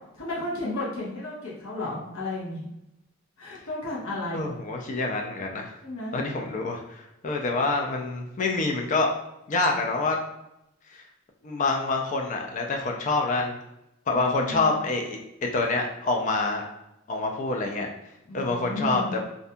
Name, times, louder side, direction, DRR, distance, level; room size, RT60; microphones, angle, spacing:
voice 1, 0.1-2.7 3.4-4.4 5.8-6.2 14.1-14.8 18.3-19.1, left 1 dB, 80° left, -6 dB, 0.8 m, -33 dB
voice 2, 4.3-5.8 6.1-9.1 9.5-10.2 10.9-11.0 11.4-13.6 14.1-15.2 15.5-16.7 17.1-17.9 18.3-19.2, left 3 dB, 35° left, 2 dB, 0.3 m, -26 dB
2.5 x 2.2 x 2.6 m, 0.88 s
head